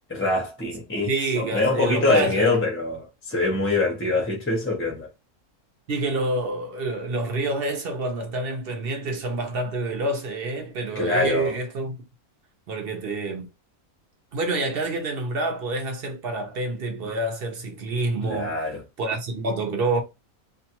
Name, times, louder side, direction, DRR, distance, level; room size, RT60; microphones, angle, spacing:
voice 1, 0.1-5.1 10.9-11.5 18.2-18.8, left 3 dB, 15° left, 0.5 m, -24 dB
voice 2, 1.1-2.6 5.9-12.0 12.7-13.5 14.3-18.6 19.0-20.0, right 2 dB, 55° right, 0.7 m, -27 dB
2.5 x 2.4 x 2.8 m
omnidirectional pair, 1.5 m